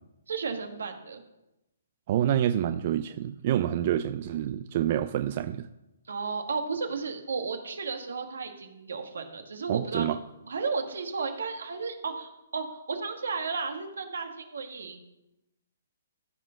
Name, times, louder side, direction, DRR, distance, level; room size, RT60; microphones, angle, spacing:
voice 1, 0.3-1.2 6.1-10.1 10.5-15.0, right 4 dB, 80° right, 5 dB, 1.9 m, -33 dB
voice 2, 2.1-5.7 9.7-10.2, right 11 dB, 45° right, 10 dB, 0.5 m, -27 dB
14.0 x 5.8 x 5.9 m, 0.94 s
hypercardioid pair, 145°, 0 cm